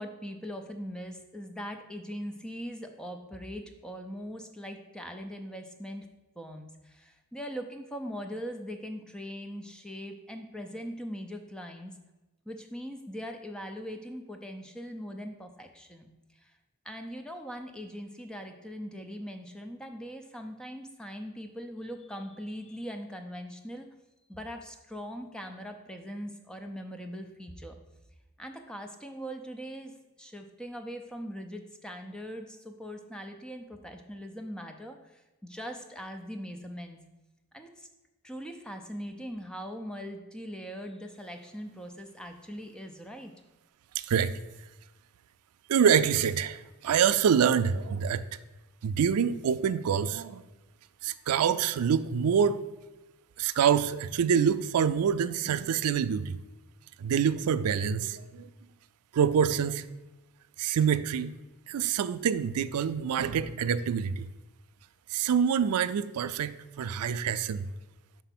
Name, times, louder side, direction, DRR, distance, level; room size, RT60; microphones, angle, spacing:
voice 1, 0.0-6.1 6.4-12.0 12.5-16.6 16.8-23.9 24.3-27.8 28.4-29.9 30.2-37.0 37.5-37.9 38.2-43.3, equal, 5° left, 5 dB, 0.5 m, -41 dB
voice 2, 44.0-44.3 45.7-48.2 48.8-50.4 51.0-52.6 53.4-56.4 57.0-58.5 59.1-59.8 60.6-61.3 61.7-64.2 65.1-67.7, right 7 dB, 85° right, 13 dB, 0.4 m, -26 dB
5.7 x 4.5 x 5.9 m, 1.1 s
head